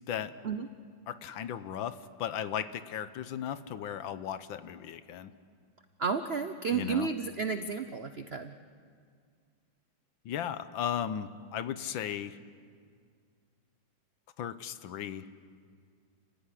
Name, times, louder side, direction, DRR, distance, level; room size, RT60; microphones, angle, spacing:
voice 1, 1.1-5.3 6.7-7.1 10.2-12.4 14.4-15.3, left 9 dB, 75° left, 13 dB, 1.6 m, -36 dB
voice 2, 6.0-8.5, right 5 dB, 65° right, 9 dB, 0.6 m, -32 dB
29.5 x 16.0 x 9.9 m, 2.1 s
omnidirectional pair, 2.2 m